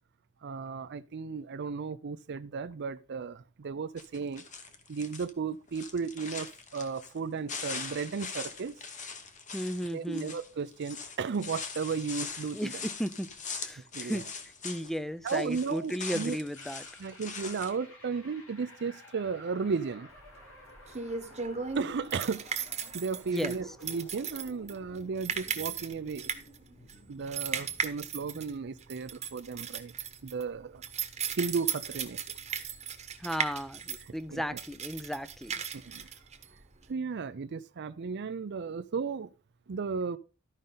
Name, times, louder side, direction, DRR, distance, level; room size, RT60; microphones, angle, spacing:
voice 1, 0.4-4.4 4.9-8.7 9.9-12.9 13.9-14.2 15.2-16.4 17.0-20.1 21.7-22.5 22.9-26.3 27.1-29.9 30.2-30.8 31.3-32.4 34.0-34.6 35.7-36.1 36.9-39.3 39.7-40.2, right 5 dB, 50° right, 0.5 m, -34 dB
sound 1, 4.0-5.3 5.7-7.2 7.5-15.0 15.2-17.7, left 5 dB, 35° left, 1.2 m, -41 dB
voice 2, 9.5-10.3 12.5-13.3 13.6-14.2 14.6-16.8 23.3-23.5 33.2-35.6, equal, ahead, 0.4 m, -35 dB
sound 2, 16.5-28.6, left 1 dB, 75° left, 4.6 m, -54 dB
sound 3, 20.2-36.9, right 6 dB, 30° right, 1.1 m, -37 dB
13.0 x 5.3 x 3.8 m
head